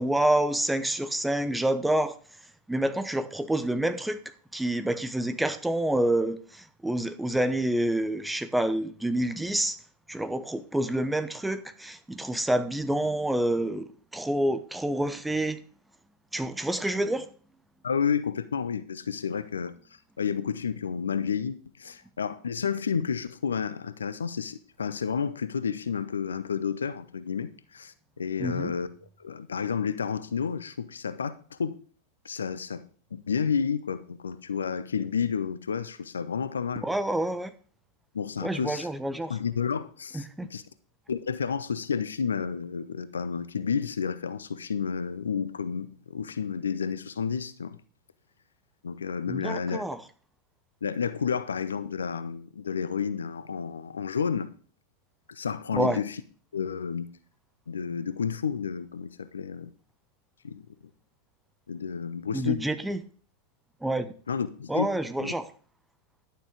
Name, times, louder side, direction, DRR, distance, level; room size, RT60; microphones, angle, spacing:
voice 1, 0.0-2.2 2.7-4.2 4.5-9.8 10.1-15.6 16.3-17.3 28.4-28.7 36.8-37.5 38.4-39.4 40.1-40.5 49.3-50.0 55.7-56.0 62.3-63.0 63.8-64.1 64.7-65.5, right 1 dB, 5° right, 1.0 m, -28 dB
voice 2, 17.8-19.7 20.2-28.9 29.2-31.8 32.2-32.8 33.1-36.9 38.1-38.9 39.3-40.6 41.1-47.8 48.8-49.8 50.8-54.5 55.3-56.2 56.5-57.1 57.7-59.7 60.4-60.6 61.7-62.6 64.3-64.9 65.2-65.3, left 6 dB, 75° left, 0.7 m, -31 dB
11.5 x 7.0 x 5.0 m
figure-of-eight pair, 90°, 0 cm